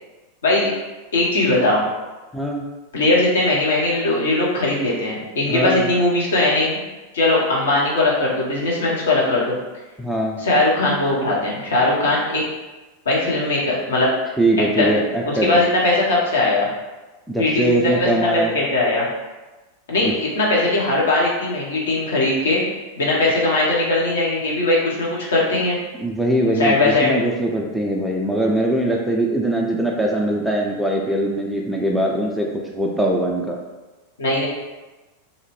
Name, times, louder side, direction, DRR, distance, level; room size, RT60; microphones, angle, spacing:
voice 1, 1.1-1.8 2.9-6.8 7.1-9.6 10.4-12.4 13.1-14.1 14.8-15.0 15.2-16.7 17.4-19.1 19.9-22.6 23.0-25.8 26.6-27.1 34.2-34.5, left 2 dB, 65° left, -4 dB, 0.7 m, -19 dB
voice 2, 2.3-2.7 5.5-5.9 10.0-10.4 14.4-15.6 17.3-18.6 20.0-20.1 25.9-33.6, right 1 dB, ahead, -1 dB, 0.3 m, -21 dB
2.6 x 2.0 x 3.1 m, 1.2 s
figure-of-eight pair, 90°, 0 cm